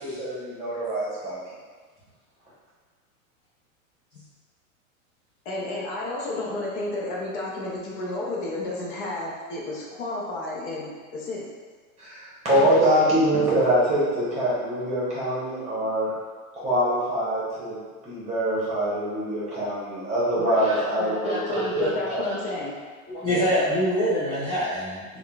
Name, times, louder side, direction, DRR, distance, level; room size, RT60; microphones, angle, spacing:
voice 1, 0.0-1.4 12.0-16.1 16.6-22.3 23.2-23.5, right 1 dB, 15° right, -8 dB, 1.0 m, -24 dB
voice 2, 5.4-11.5 20.3-20.6 21.0-22.7, left 2 dB, 45° left, -4 dB, 0.7 m, -31 dB
voice 3, 23.1-25.0, equal, 10° left, -13 dB, 0.4 m, -24 dB
3.5 x 2.3 x 2.3 m, 1.5 s
hypercardioid pair, 130°, 43 cm